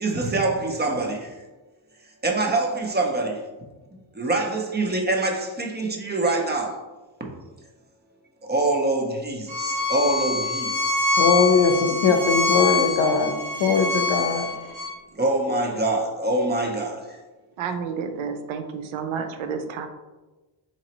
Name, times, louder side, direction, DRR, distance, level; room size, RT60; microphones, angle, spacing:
voice 1, 0.0-1.1 2.2-3.2 4.2-6.7 8.5-9.3 9.9-10.3 15.2-16.9, right 2 dB, 20° right, 0.6 m, -24 dB
Bowed string instrument, 9.5-14.9, left 3 dB, 70° right, 1.2 m, -25 dB
voice 2, 11.2-13.3 13.6-14.5, left 5 dB, 65° left, 0.7 m, -20 dB
voice 3, 17.6-19.9, right 6 dB, 85° right, 0.6 m, -30 dB
3.9 x 3.0 x 2.9 m
cardioid pair, 110°, 47 cm